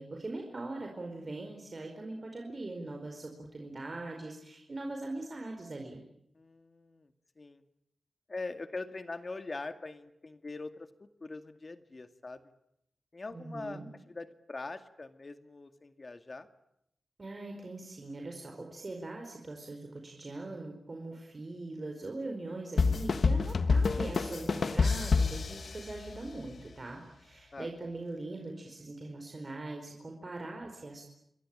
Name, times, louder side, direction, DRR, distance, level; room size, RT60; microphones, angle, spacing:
voice 1, 0.0-6.0 13.3-13.9 17.2-31.0, right 2 dB, 45° right, 2 dB, 4.7 m, -41 dB
voice 2, 6.3-7.1 7.4-7.6 8.3-12.4 13.1-16.5 27.5-27.7, left 3 dB, 45° left, 9 dB, 2.1 m, -42 dB
sound 1, 22.8-26.4, left 4 dB, 70° left, 1.4 m, -28 dB
29.0 x 22.5 x 9.0 m, 0.79 s
wide cardioid pair, 80°, 0 cm